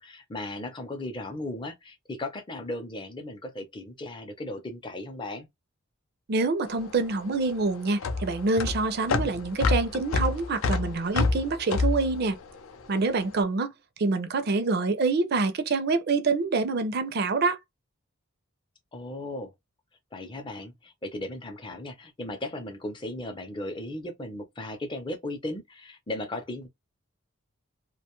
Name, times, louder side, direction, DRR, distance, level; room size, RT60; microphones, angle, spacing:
voice 1, 0.0-5.5 18.9-19.5 20.1-26.7, left 1 dB, 25° left, 0.5 m, -36 dB
voice 2, 6.3-12.4 12.9-17.6, right 3 dB, 50° right, 0.4 m, -26 dB
sound 1, 6.7-13.2, left 3 dB, 75° left, 0.5 m, -28 dB
2.5 x 2.2 x 2.9 m
head